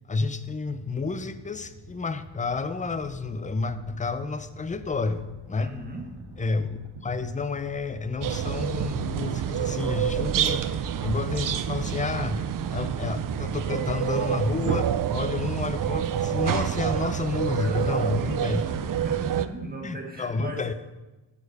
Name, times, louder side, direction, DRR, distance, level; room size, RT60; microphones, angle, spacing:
voice 1, 0.1-5.7 6.4-18.7 19.8-20.7, left 4 dB, 20° left, 11 dB, 0.4 m, -30 dB
sound 1, 0.6-16.9, equal, 65° right, 1.8 m, -48 dB
sound 2, 2.3-13.8, right 2 dB, 85° right, 1.3 m, -48 dB
voice 2, 5.6-6.1 17.6-20.7, right 2 dB, 20° right, 1 dB, 1.5 m, -37 dB
sound 3, 8.2-19.5, right 9 dB, 45° right, 0.4 m, -28 dB
11.5 x 4.6 x 4.8 m, 1.1 s
cardioid pair, 115°, 47 cm